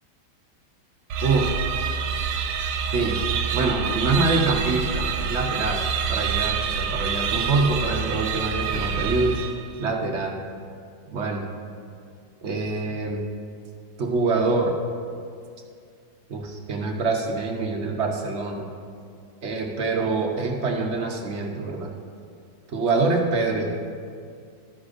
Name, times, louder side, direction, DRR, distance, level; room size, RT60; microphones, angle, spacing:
sound 1, 1.1-9.8, right 6 dB, 85° right, 1.3 m, -27 dB
voice 1, 1.2-1.5 2.9-3.2 3.5-5.8 6.1-9.4 9.8-10.3 11.1-11.4 12.4-13.2 14.0-14.7 16.3-18.7 19.4-21.9 22.7-23.7, right 3 dB, 50° right, 1 dB, 0.9 m, -25 dB
13.0 x 9.9 x 2.5 m, 2.3 s
omnidirectional pair, 1.9 m